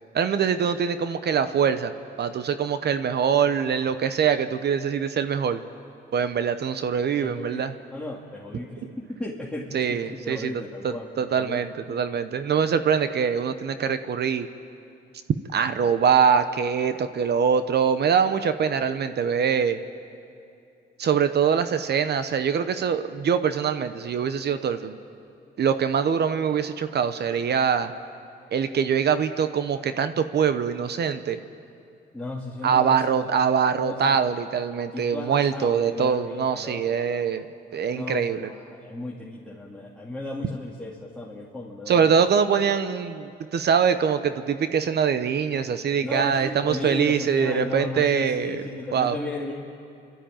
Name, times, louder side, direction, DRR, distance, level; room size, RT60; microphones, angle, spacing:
voice 1, 0.1-1.9 2.2-5.6 6.1-7.7 9.7-14.5 15.5-19.8 21.0-24.9 25.6-27.9 28.5-31.4 32.6-37.4 37.7-38.5 41.9-48.6 48.9-49.2, right 7 dB, 55° right, 10 dB, 0.9 m, -23 dB
voice 2, 7.2-7.7 7.9-11.6 11.9-12.0 32.1-33.3 33.8-34.2 34.9-37.0 37.9-42.1 46.0-49.5, left 2 dB, 5° left, -5 dB, 2.5 m, -35 dB
29.5 x 13.0 x 9.0 m, 2.7 s
cardioid pair, 90°, 20 cm